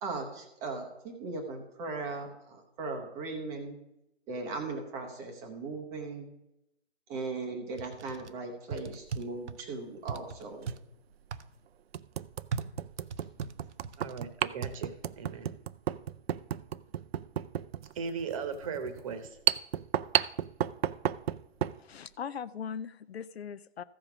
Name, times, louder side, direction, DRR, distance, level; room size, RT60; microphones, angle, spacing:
voice 1, 0.0-3.8 4.3-6.3 7.1-10.7 13.2-13.3, right 3 dB, 10° right, 3 dB, 0.6 m, -38 dB
sound 1, 7.8-8.3 8.7-9.6 10.1-10.8 11.3-11.5 12.5-14.2 14.6-14.8, right 5 dB, 85° right, 0.8 m, -38 dB
sound 2, 8.9-9.2 10.6-10.7 11.3-11.4 11.9-21.8, right 10 dB, 60° right, 0.4 m, -33 dB
voice 2, 14.0-15.5 17.9-19.3, right 5 dB, 30° right, 10 dB, 1.1 m, -37 dB
voice 3, 21.8-23.8, left 7 dB, 65° left, 16 dB, 0.6 m, -40 dB
14.5 x 5.2 x 5.9 m, 0.87 s
hypercardioid pair, 155°, 34 cm